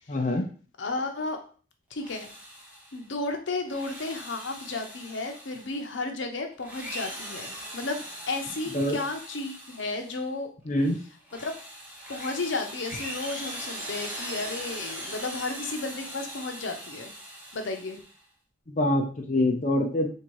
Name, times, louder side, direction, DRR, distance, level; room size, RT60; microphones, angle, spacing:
voice 1, 0.1-0.5 8.7-9.0 10.7-11.0 18.7-20.1, left 1 dB, 40° left, 1 dB, 0.5 m, -25 dB
voice 2, 0.8-1.4 1.9-2.3 2.9-10.5 11.3-11.5 12.1-17.1 17.5-18.0, left 3 dB, 80° left, 5 dB, 0.7 m, -33 dB
Drill, 1.9-3.1 3.6-6.0 6.5-10.2 10.7-18.2, equal, 10° right, 0.9 m, -40 dB
3.6 x 2.8 x 4.6 m, 0.41 s
head